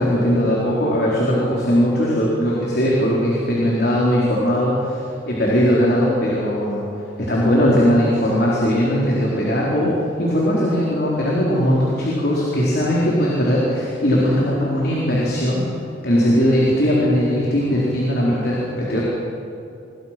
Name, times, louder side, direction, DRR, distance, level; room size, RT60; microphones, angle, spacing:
voice 1, 0.0-6.8 7.2-15.7 16.0-19.0, equal, 55° left, -5 dB, 4.4 m, -19 dB
27.5 x 21.5 x 6.1 m, 2.7 s
head